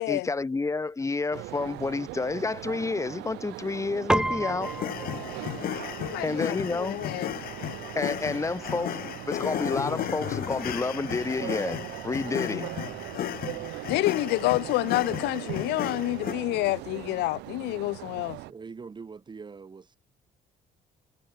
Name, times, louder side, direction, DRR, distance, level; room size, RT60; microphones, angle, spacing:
voice 1, 0.0-4.7 6.2-7.0 8.0-9.0 9.3-12.7, left 3 dB, 15° left, 1.9 m, -30 dB
sound 1, 1.3-18.5, right 20 dB, 85° right, 0.8 m, -40 dB
Piano, 4.1-13.7, right 1 dB, 5° right, 0.8 m, -36 dB
sound 2, 4.6-16.3, left 13 dB, 60° left, 1.1 m, -34 dB
voice 2, 6.0-7.4 12.4-12.7 13.9-18.4, left 20 dB, 85° left, 1.1 m, -28 dB
voice 3, 18.4-20.0, right 5 dB, 25° right, 2.2 m, -43 dB
cardioid pair, 110°, 17 cm